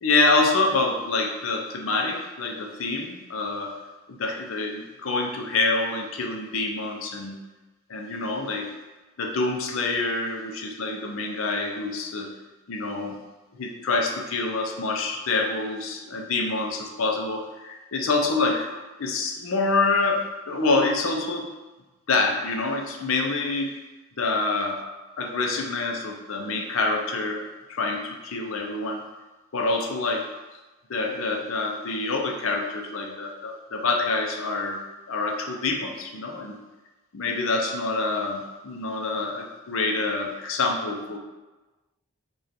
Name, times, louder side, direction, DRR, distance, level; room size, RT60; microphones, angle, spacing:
voice 1, 0.0-3.8 4.1-7.4 7.9-8.7 9.2-12.3 12.7-13.2 13.5-18.7 19.0-21.5 22.1-23.7 24.2-24.8 25.2-29.0 29.5-30.3 30.9-34.8 35.1-36.6 37.1-41.2, left 3 dB, 70° left, 2 dB, 0.6 m, -26 dB
5.0 x 2.4 x 4.3 m, 1.2 s
head